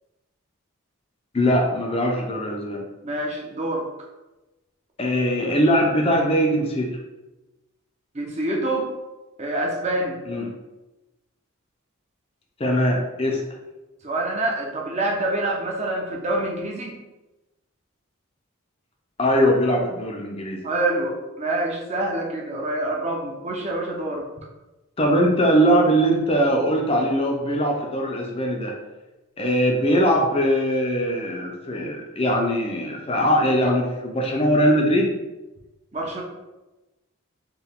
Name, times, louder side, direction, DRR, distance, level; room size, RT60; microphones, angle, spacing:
voice 1, 1.3-2.8 5.0-6.9 10.3-10.5 12.6-13.4 19.2-20.6 25.0-28.8 29.4-35.1, equal, 25° left, 0 dB, 0.4 m, -21 dB
voice 2, 3.0-3.9 8.1-8.9 9.4-10.2 14.0-17.0 20.6-24.3 35.9-36.2, right 2 dB, 30° right, -1 dB, 0.6 m, -26 dB
4.4 x 2.2 x 3.5 m, 1.1 s
head